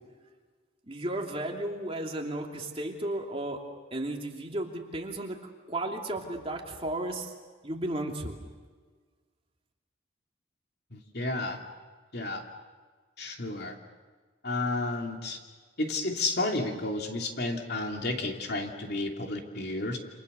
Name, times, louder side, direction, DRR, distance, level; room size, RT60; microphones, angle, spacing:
voice 1, 0.9-3.6 3.9-7.3 7.6-8.4, right 1 dB, 30° right, 1 dB, 2.8 m, -34 dB
voice 2, 10.9-11.6 12.1-12.4 13.2-13.7 14.4-15.4 15.8-20.0, left 2 dB, 55° left, 2 dB, 2.9 m, -31 dB
29.0 x 27.5 x 6.9 m, 1.5 s
head